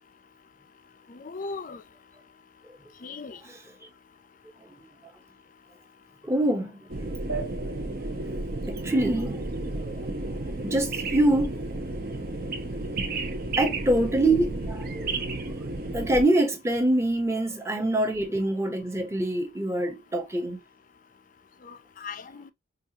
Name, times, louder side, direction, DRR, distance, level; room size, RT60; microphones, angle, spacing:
voice 1, 1.1-1.8 3.0-3.4 13.5-13.6 21.6-22.5, left 4 dB, 40° left, 0.4 m, -38 dB
voice 2, 6.2-7.4 8.7-9.4 9.8-11.7 13.6-15.3 15.9-20.6, right 1 dB, 15° right, 0.8 m, -25 dB
sound 1, 6.9-16.2, right 2 dB, 45° right, 0.8 m, -32 dB
sound 2, 7.3-10.3, right 4 dB, 65° right, 1.1 m, -40 dB
5.3 x 2.4 x 2.7 m
head